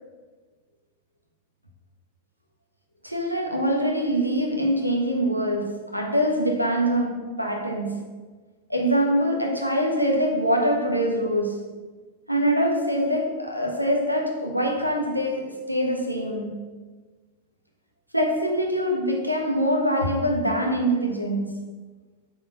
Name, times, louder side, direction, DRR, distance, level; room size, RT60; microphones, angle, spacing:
voice 1, 3.0-8.1 8.7-11.7 12.3-16.7 18.1-21.6, equal, 90° right, 1.3 m, -24 dB
8.2 x 4.5 x 6.3 m
figure-of-eight pair, 90°, 0 cm